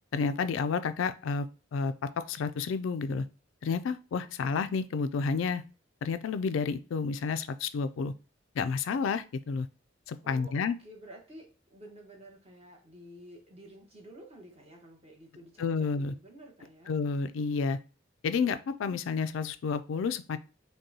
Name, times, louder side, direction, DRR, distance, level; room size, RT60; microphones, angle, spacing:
voice 1, 0.1-3.3 3.6-5.6 6.0-8.1 8.6-9.7 10.1-10.8 15.6-16.1 16.9-17.8 18.2-20.4, left 5 dB, 80° left, 12 dB, 0.3 m, -30 dB
voice 2, 10.2-16.9, right 1 dB, 30° right, 0 dB, 1.1 m, -51 dB
5.2 x 2.2 x 2.8 m, 0.33 s
head